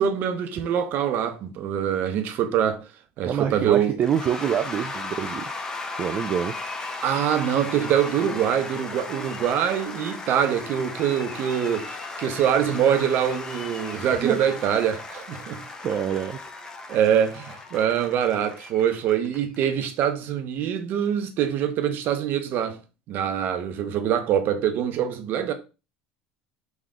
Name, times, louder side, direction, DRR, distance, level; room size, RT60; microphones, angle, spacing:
voice 1, 0.0-2.9 3.2-4.0 7.0-15.6 16.9-22.8 23.1-25.5, right 9 dB, 55° right, 0.8 m, -24 dB
voice 2, 3.3-5.4 6.0-6.5 14.2-14.4 15.6-16.4, right 8 dB, 40° right, 0.4 m, -26 dB
Cheering / Applause / Crowd, 4.0-19.6, left 3 dB, 15° left, 0.9 m, -36 dB
3.7 x 3.1 x 3.7 m
supercardioid pair, 100°, 4 cm